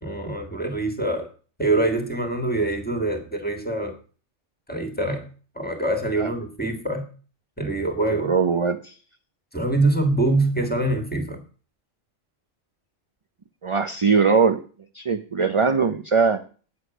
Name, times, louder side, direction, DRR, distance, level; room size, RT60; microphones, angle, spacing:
voice 1, 0.0-1.3 1.6-3.9 4.7-5.2 5.6-7.1 7.6-8.3 9.5-11.4, right 2 dB, 5° left, 5 dB, 1.8 m, -24 dB
voice 2, 8.2-8.9 13.6-14.6 14.9-16.4, right 5 dB, 35° right, 7 dB, 0.5 m, -21 dB
9.7 x 8.2 x 6.1 m, 0.39 s
omnidirectional pair, 1.3 m